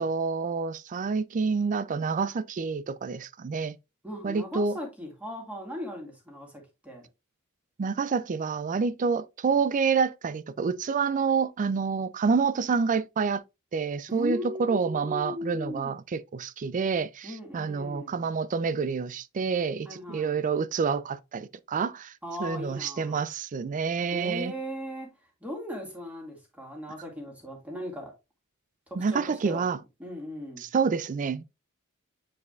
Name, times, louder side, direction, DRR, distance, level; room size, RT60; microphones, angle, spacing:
voice 1, 0.0-3.8 4.2-4.7 7.8-13.4 13.7-22.1 22.4-24.5 29.0-29.8 30.6-31.4, right 5 dB, 35° right, 0.4 m, -28 dB
voice 2, 4.0-7.1 14.1-16.0 17.2-18.3 19.8-20.4 22.2-23.2 24.1-25.1 25.4-28.1 28.9-30.6, left 1 dB, 5° right, 2.1 m, -38 dB
8.2 x 4.8 x 2.4 m
head